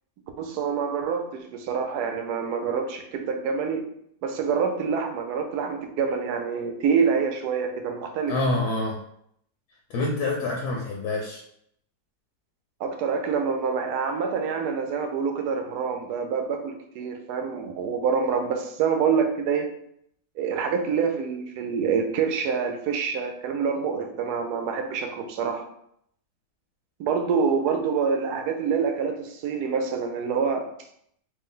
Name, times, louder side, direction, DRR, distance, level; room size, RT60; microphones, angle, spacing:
voice 1, 0.4-3.8 4.2-8.4 12.8-19.7 20.4-25.6 27.0-30.7, right 6 dB, 75° right, 5 dB, 1.1 m, -26 dB
voice 2, 8.3-9.0 9.9-11.4, left 2 dB, 75° left, -1 dB, 1.1 m, -26 dB
3.2 x 2.6 x 3.7 m, 0.71 s
omnidirectional pair, 1.8 m